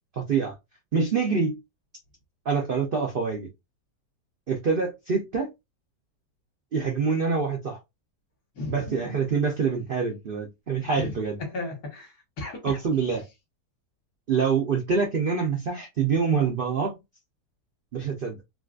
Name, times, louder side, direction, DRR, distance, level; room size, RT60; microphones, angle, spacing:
voice 1, 0.2-0.5 0.9-1.6 2.5-3.5 4.5-5.5 6.7-7.8 8.7-11.4 12.6-13.2 14.3-17.0 17.9-18.4, right 5 dB, 90° right, 0.4 m, -25 dB
voice 2, 8.5-9.1 10.9-12.8, left 2 dB, 60° left, 1.7 m, -35 dB
3.7 x 2.3 x 2.4 m
omnidirectional pair, 1.8 m